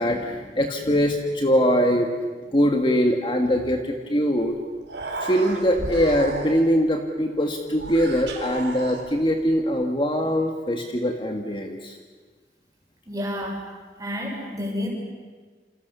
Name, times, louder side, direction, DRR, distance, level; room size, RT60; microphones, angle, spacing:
voice 1, 0.0-2.1 2.5-4.6 5.2-11.9, equal, 30° left, 3 dB, 1.8 m, -22 dB
Human voice, 4.4-4.5 4.8-6.8 7.7-9.4, right 2 dB, 85° right, 4.5 m, -34 dB
voice 2, 13.1-13.7 14.0-14.9, left 1 dB, 20° right, 0 dB, 6.5 m, -30 dB
29.0 x 27.5 x 6.9 m, 1.4 s
head